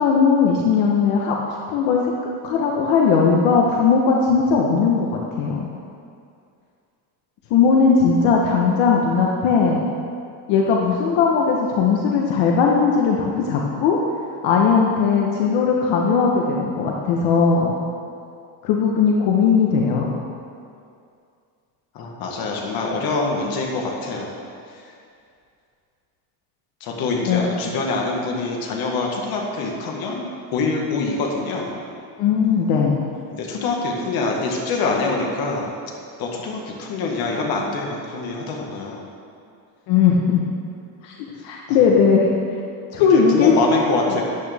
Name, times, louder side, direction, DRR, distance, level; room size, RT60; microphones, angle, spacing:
voice 1, 0.0-1.4 1.7-2.1 2.4-5.6 7.5-9.8 10.5-14.0 14.4-17.7 18.6-20.1 27.3-27.4 32.2-33.0 39.9-40.4 41.0-41.1 41.4-42.3 42.9-43.5 44.1-44.2, left 5 dB, 75° left, -1 dB, 1.2 m, -18 dB
voice 2, 21.9-24.4 24.7-24.8 26.8-31.8 33.3-35.7 36.2-39.1 41.7-41.8 43.1-44.2, left 3 dB, 55° left, -1 dB, 1.7 m, -25 dB
13.5 x 8.7 x 3.5 m, 2.4 s
cardioid pair, 175°, 44 cm